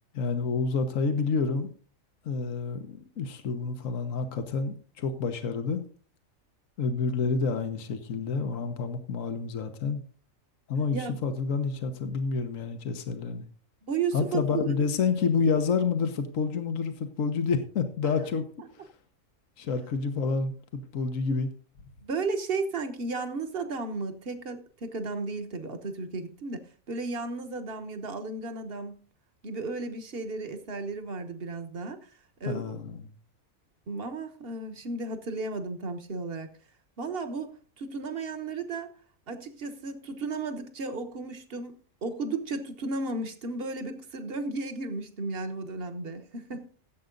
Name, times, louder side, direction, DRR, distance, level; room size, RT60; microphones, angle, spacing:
voice 1, 0.1-1.7 2.2-5.8 6.8-10.0 10.7-13.4 14.1-18.4 19.6-21.5 32.5-33.1, left 5 dB, 75° left, 1.5 m, -29 dB
voice 2, 13.8-14.8 22.0-29.0 29.4-32.0 32.4-32.8 33.9-36.5 37.0-38.9 39.3-41.7 42.0-46.7, right 3 dB, 45° right, 1.5 m, -34 dB
16.0 x 7.9 x 3.9 m
omnidirectional pair, 1.4 m